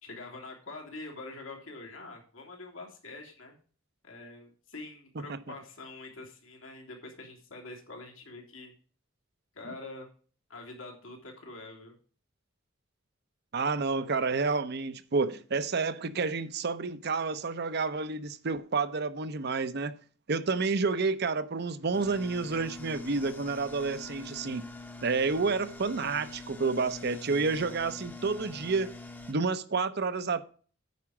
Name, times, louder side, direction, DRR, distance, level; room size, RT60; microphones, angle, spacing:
voice 1, 0.0-3.5 4.0-8.7 9.5-10.1 10.5-11.9, left 2 dB, 85° left, 3.0 m, -45 dB
voice 2, 13.5-19.9 20.3-24.7 25.0-28.9 29.3-30.4, right 4 dB, 55° right, 0.7 m, -30 dB
sound 1, 21.9-29.3, left 3 dB, 10° left, 0.8 m, -45 dB
9.5 x 4.9 x 7.1 m
head